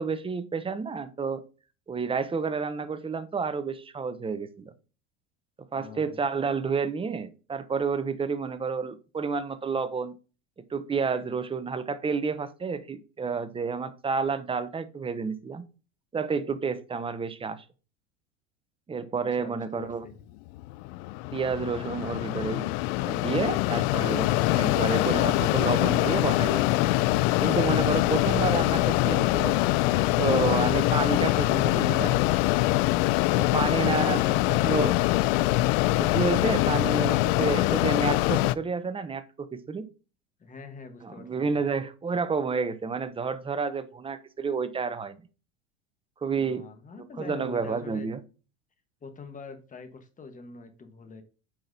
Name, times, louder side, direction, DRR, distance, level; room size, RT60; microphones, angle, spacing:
voice 1, 0.0-1.4 1.9-4.7 5.7-10.1 10.7-15.6 16.1-17.6 18.9-20.0 21.3-22.6 23.0-24.3 24.6-26.9 27.4-29.6 30.2-32.2 33.4-34.2 34.6-34.9 36.0-39.9 41.0-45.2 46.2-46.7 47.0-48.2, right 5 dB, 15° right, 0.7 m, -30 dB
voice 2, 5.7-6.2 19.3-20.2 31.7-32.3 40.4-41.6 46.3-48.1 49.0-51.2, left 4 dB, 20° left, 1.3 m, -43 dB
Mechanisms, 20.6-38.5, left 18 dB, 55° left, 0.4 m, -24 dB
8.7 x 5.9 x 2.7 m
hypercardioid pair, 95°, 37 cm